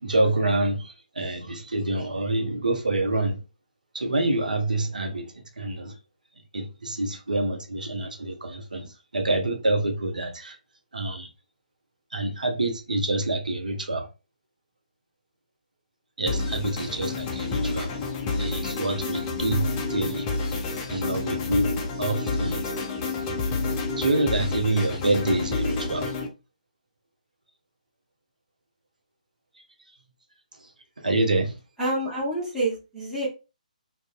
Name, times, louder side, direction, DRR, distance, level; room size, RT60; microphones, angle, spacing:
voice 1, 0.0-3.4 3.9-5.9 6.5-10.6 10.9-11.3 12.1-14.1 16.2-17.9 18.3-20.3 20.9-21.7 22.0-22.7 24.0-26.1 31.0-31.6, right 2 dB, 70° right, 0.6 m, -27 dB
sound 1, 16.3-26.3, left 3 dB, 20° left, 0.4 m, -29 dB
voice 2, 31.8-33.3, right 1 dB, 5° right, 0.7 m, -27 dB
2.5 x 2.0 x 2.4 m
figure-of-eight pair, 135°, 4 cm